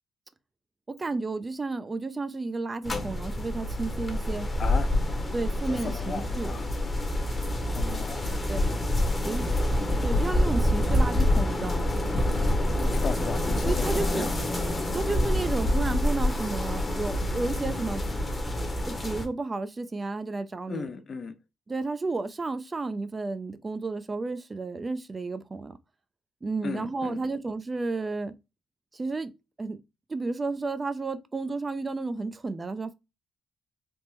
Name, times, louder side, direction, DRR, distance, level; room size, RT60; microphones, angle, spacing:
voice 1, 0.9-4.5 5.3-6.5 8.5-8.7 9.2-9.4 10.0-12.0 13.6-14.3 14.9-18.0 18.8-20.9 21.7-25.8 26.4-28.3 28.9-29.3 29.6-29.8 30.1-32.9, right 3 dB, 30° right, 0.4 m, -32 dB
sound 1, 2.8-19.3, left 1 dB, 25° left, 0.8 m, -27 dB
voice 2, 5.6-6.7 7.7-8.3 12.8-14.3 20.7-21.4 26.6-27.2, left 5 dB, 50° left, 0.5 m, -36 dB
3.4 x 2.1 x 3.0 m
supercardioid pair, 70°, 0 cm